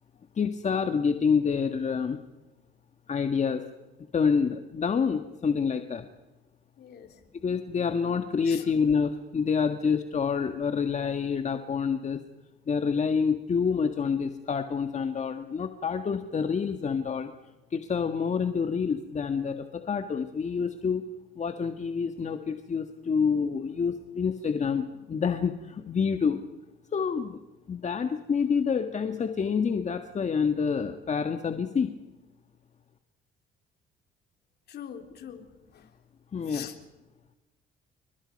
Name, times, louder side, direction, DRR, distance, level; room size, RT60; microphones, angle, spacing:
voice 1, 0.3-2.2 3.1-3.6 4.1-6.1 7.4-12.2 12.7-17.3 17.7-21.0 21.3-26.4 26.9-27.4 27.7-31.9 36.3-36.7, left 6 dB, 40° left, 7 dB, 1.6 m, -27 dB
voice 2, 6.8-7.2 8.5-8.7 34.7-35.9 36.5-36.7, left 9 dB, 60° left, 5 dB, 3.5 m, -43 dB
29.5 x 24.0 x 5.4 m, 1.1 s
supercardioid pair, 70°, 18 cm